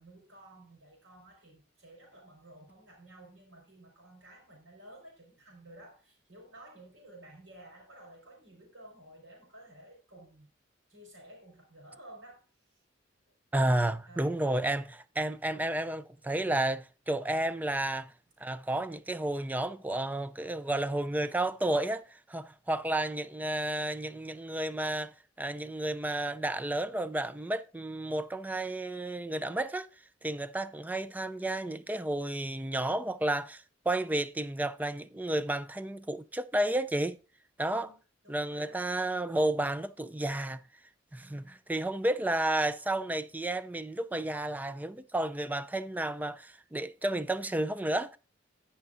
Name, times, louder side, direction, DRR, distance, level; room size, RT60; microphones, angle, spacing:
voice 1, 0.0-10.5 10.9-12.8 13.7-14.4 37.7-38.8 41.1-41.6, right 1 dB, 80° right, 4.5 m, -54 dB
voice 2, 13.5-18.1 18.4-29.9 30.2-37.2 37.6-37.9 38.3-40.6 41.1-48.2, right 1 dB, 10° right, 0.3 m, -32 dB
17.0 x 5.7 x 2.5 m
head